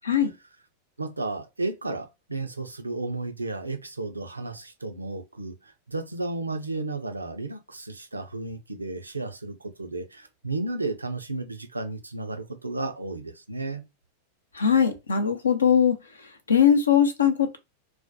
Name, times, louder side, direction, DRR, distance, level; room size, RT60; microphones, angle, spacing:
voice 1, 1.0-13.8, right 2 dB, 80° right, 0.4 m, -33 dB
voice 2, 14.5-16.0 16.5-17.6, left 8 dB, 75° left, 0.5 m, -20 dB
2.2 x 2.1 x 2.6 m
figure-of-eight pair, 90°, 0 cm